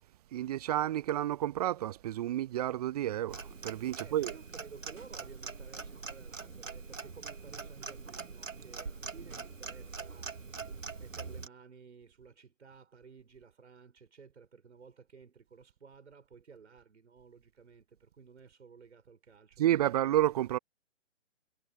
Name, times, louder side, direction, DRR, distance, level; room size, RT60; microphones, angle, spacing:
voice 1, 0.3-4.3 19.6-20.6, right 13 dB, 30° right, 1.1 m, -30 dB
Clock, 3.3-11.5, right 4 dB, 85° right, 1.2 m, -43 dB
voice 2, 3.9-10.4 11.0-20.1, right 5 dB, 65° right, 6.0 m, -55 dB
figure-of-eight pair, 130°, 38 cm